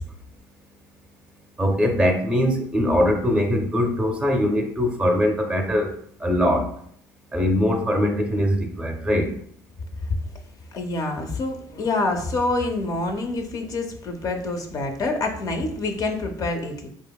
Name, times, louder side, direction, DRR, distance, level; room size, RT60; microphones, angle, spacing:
voice 1, 1.6-5.9 6.2-6.7 7.3-9.3, equal, 10° right, 3 dB, 0.5 m, -21 dB
voice 2, 10.7-16.9, left 2 dB, 45° left, 5 dB, 0.4 m, -26 dB
2.8 x 2.4 x 2.2 m, 0.66 s
supercardioid pair, 95°, 9 cm